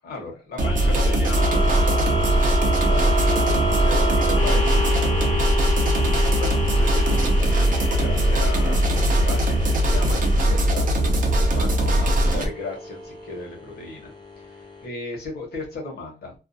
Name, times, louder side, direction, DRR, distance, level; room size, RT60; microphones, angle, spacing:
voice 1, 0.0-11.0 11.5-14.1 14.4-16.3, left 3 dB, 60° left, 0 dB, 1.0 m, -36 dB
sound 1, 0.6-14.8, equal, 25° left, 0.6 m, -29 dB
sound 2, 0.6-12.5, right 1 dB, 45° right, 0.5 m, -20 dB
2.4 x 2.2 x 2.5 m, 0.31 s
wide cardioid pair, 165°, 19 cm